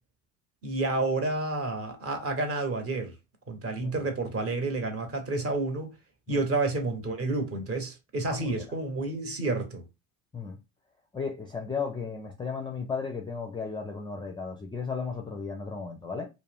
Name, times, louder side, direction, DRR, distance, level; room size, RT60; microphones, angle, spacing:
voice 1, 0.6-3.1 3.5-5.9 6.3-9.8, right 2 dB, 35° right, 1.0 m, -30 dB
voice 2, 11.1-16.3, left 5 dB, 10° left, 0.4 m, -35 dB
2.3 x 2.0 x 3.4 m
hypercardioid pair, 65°, 42 cm